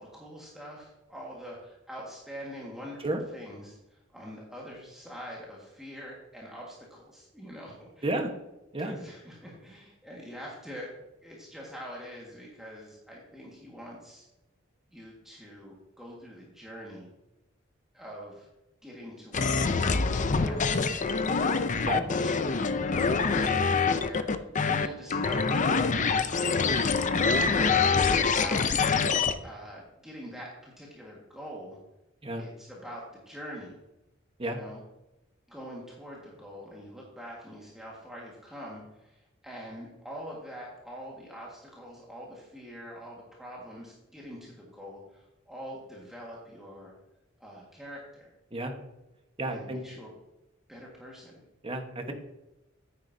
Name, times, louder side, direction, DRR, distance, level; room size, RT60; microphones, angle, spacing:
voice 1, 0.0-8.1 8.8-10.9 11.2-14.3 14.9-17.1 17.9-18.5 18.8-22.7 23.1-26.2 27.3-28.7 29.4-31.8 32.4-33.8 34.4-34.8 35.5-46.9 47.4-48.3 49.4-50.1 50.7-51.4, equal, ahead, -4 dB, 1.7 m, -44 dB
sound 1, 19.3-29.3, left 4 dB, 40° left, 0.5 m, -25 dB
voice 2, 49.4-49.8 51.6-52.1, right 1 dB, 25° right, 4 dB, 1.2 m, -31 dB
9.6 x 9.5 x 2.7 m, 0.96 s
head